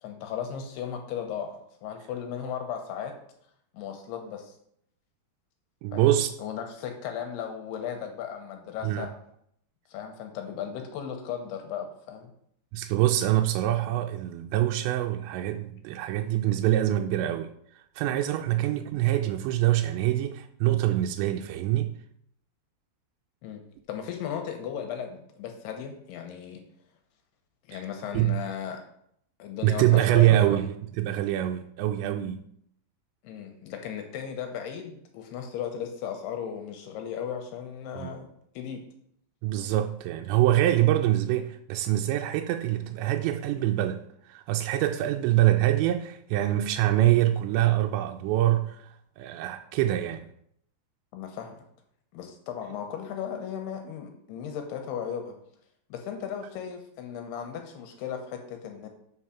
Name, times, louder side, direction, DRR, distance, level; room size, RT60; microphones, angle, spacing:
voice 1, 0.0-3.2 3.7-4.5 5.9-6.1 6.4-9.1 9.9-12.3 18.5-18.6 23.4-23.6 23.9-26.6 27.7-28.8 29.4-30.6 33.2-38.3 38.5-38.8 51.1-51.6 52.1-55.3 55.9-58.9, left 8 dB, 75° left, 2.8 m, -36 dB
voice 2, 5.8-6.3 8.8-9.1 12.7-17.5 18.0-21.9 27.7-27.8 28.1-28.4 29.6-32.4 38.0-38.2 39.4-44.0 44.3-50.3, right 14 dB, 85° right, 2.8 m, -25 dB
7.9 x 4.9 x 5.7 m
omnidirectional pair, 5.1 m